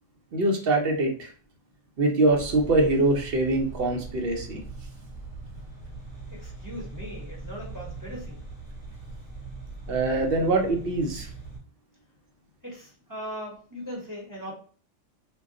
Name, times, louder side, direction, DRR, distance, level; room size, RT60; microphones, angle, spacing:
voice 1, 0.3-1.3 2.0-4.6 9.9-11.3, right 2 dB, 60° right, 2 dB, 0.8 m, -23 dB
sound 1, 2.3-11.6, right 3 dB, 20° left, 0.8 m, -41 dB
voice 2, 6.3-8.4 12.6-14.5, equal, 20° right, -5 dB, 0.9 m, -39 dB
2.3 x 2.2 x 3.6 m, 0.42 s
omnidirectional pair, 1.2 m